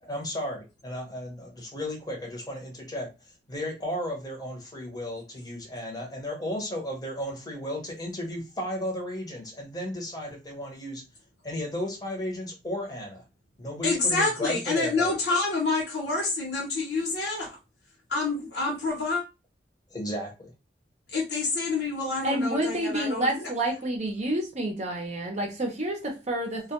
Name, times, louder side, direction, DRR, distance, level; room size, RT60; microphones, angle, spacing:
voice 1, 0.0-3.1 3.5-11.0 11.4-13.2 13.6-15.1 19.9-20.5, equal, 20° left, 0.8 m, -34 dB
voice 2, 13.8-17.5 18.1-19.2 21.1-23.3, left 3 dB, 70° left, 0.9 m, -27 dB
voice 3, 22.2-26.7, right 1 dB, 40° right, 0.7 m, -29 dB
2.2 x 2.2 x 2.8 m
head